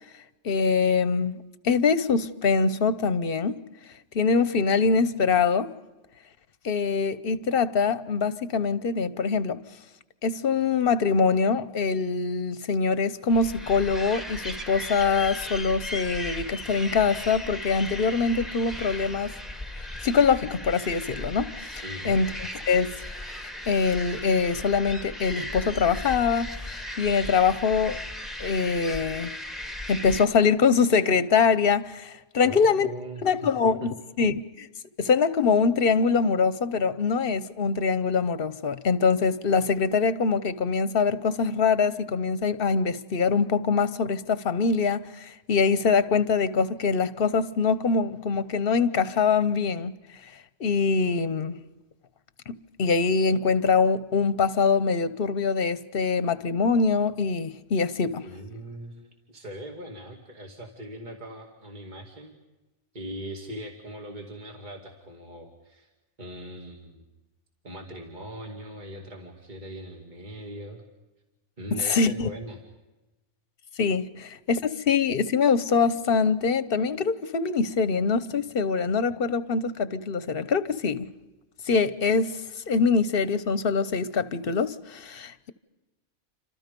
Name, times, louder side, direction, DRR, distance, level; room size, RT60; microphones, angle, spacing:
voice 1, 0.4-3.6 4.1-5.7 6.6-9.6 10.2-19.4 20.0-22.3 22.7-22.9 23.7-28.0 28.4-29.3 29.9-32.9 33.2-34.7 35.0-49.9 50.6-51.6 52.5-58.2 71.7-72.3 73.8-81.1 81.7-82.4 82.7-85.5, left 5 dB, 50° left, 1.1 m, -24 dB
sound 1, 13.3-30.3, left 1 dB, ahead, 1.5 m, -37 dB
voice 2, 21.8-22.2 32.4-33.9 58.2-62.3 62.9-65.9 66.2-67.1 67.6-70.8 71.6-72.6, right 1 dB, 40° right, 2.7 m, -40 dB
29.0 x 26.0 x 5.3 m
omnidirectional pair, 1.2 m